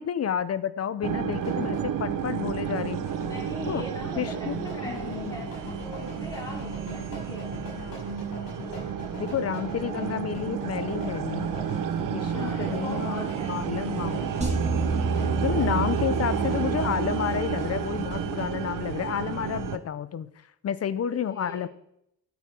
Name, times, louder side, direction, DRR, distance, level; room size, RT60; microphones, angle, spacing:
voice 1, 0.0-3.1 3.7-3.8 4.2-5.5 7.8-8.1 9.2-11.5 12.1-14.4 15.4-20.3 20.6-21.7, left 9 dB, 40° left, 16 dB, 0.5 m, -30 dB
sound 1, 1.0-18.4, left 3 dB, 65° left, 5.0 m, -41 dB
sound 2, 1.0-19.8, right 9 dB, 60° right, 0.8 m, -31 dB
voice 2, 3.3-7.5 8.6-9.2 12.3-13.8 15.0-15.8 21.3-21.6, equal, 10° left, -3 dB, 3.8 m, -41 dB
sound 3, 14.4-18.7, right 3 dB, 15° right, 1.9 m, -30 dB
12.5 x 8.2 x 4.3 m, 0.77 s
cardioid pair, 140°, 38 cm